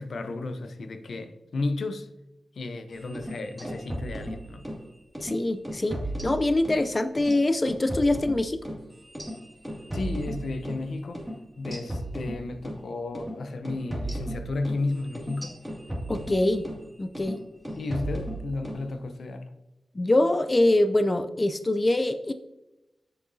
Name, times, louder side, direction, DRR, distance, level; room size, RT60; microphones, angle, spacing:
voice 1, 0.0-2.1 2.6-4.7 9.9-11.3 11.6-15.6 17.8-19.5, left 2 dB, 75° left, 0.6 m, -33 dB
sound 1, 3.0-4.8 5.1-5.3 5.6-6.8 7.1-10.8 11.1-11.3 11.6-12.8 13.1-13.3 13.6-16.8 17.1-17.4 17.6-18.8, right 1 dB, ahead, 2.2 m, -35 dB
voice 2, 5.2-8.6 16.1-16.6 17.0-17.4 20.0-22.3, left 1 dB, 30° left, 0.4 m, -24 dB
7.7 x 6.1 x 2.7 m
cardioid pair, 65°, 0 cm